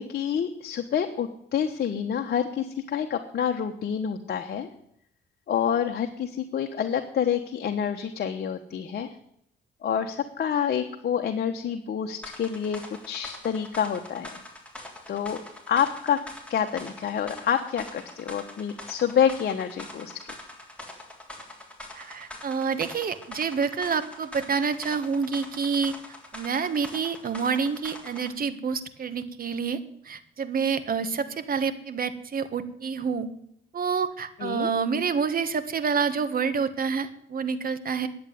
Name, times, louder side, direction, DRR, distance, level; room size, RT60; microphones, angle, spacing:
voice 1, 0.0-4.7 5.5-9.1 9.8-12.8 13.1-14.4 15.1-15.4 15.7-16.2 16.5-20.3 34.4-34.7, left 8 dB, 55° left, 5 dB, 1.2 m, -27 dB
sound 1, 12.2-28.3, left 1 dB, 5° left, 3.5 m, -44 dB
voice 2, 21.9-25.9 26.3-29.8 30.0-33.3 33.7-38.1, right 5 dB, 45° right, 11 dB, 1.5 m, -28 dB
11.0 x 7.9 x 9.3 m, 0.73 s
cardioid pair, 90°, 20 cm